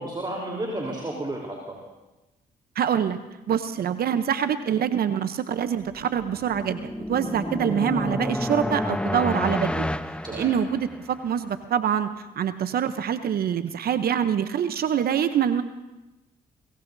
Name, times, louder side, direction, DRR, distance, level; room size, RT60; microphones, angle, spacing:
voice 1, 0.0-1.8 10.2-10.5, right 1 dB, 30° right, -2 dB, 3.6 m, -32 dB
voice 2, 2.8-3.2 3.5-9.9 10.3-12.1 12.4-15.6, right 8 dB, 65° right, 11 dB, 0.7 m, -25 dB
sound 1, 6.0-11.2, left 1 dB, 5° left, 0.8 m, -30 dB
22.5 x 21.5 x 2.7 m, 1.0 s
supercardioid pair, 55°, 17 cm